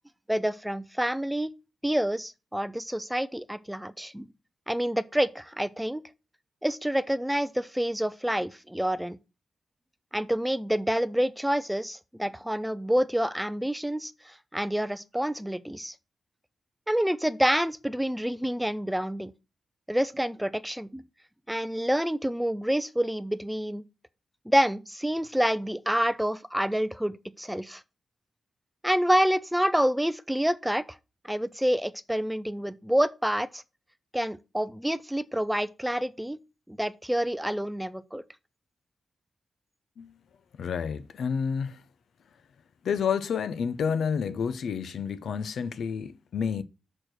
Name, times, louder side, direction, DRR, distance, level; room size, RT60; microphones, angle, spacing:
voice 1, 0.3-1.5 1.8-4.3 4.7-6.0 6.6-9.2 10.1-15.9 16.9-19.3 19.9-21.0 21.5-23.8 24.5-27.8 28.8-31.0 31.2-33.6 34.1-36.4 36.7-38.2, equal, 5° right, 0.4 m, -28 dB
voice 2, 40.6-41.8 42.8-46.6, left 6 dB, 80° left, 0.6 m, -29 dB
6.3 x 4.5 x 6.5 m
wide cardioid pair, 120°, 0 cm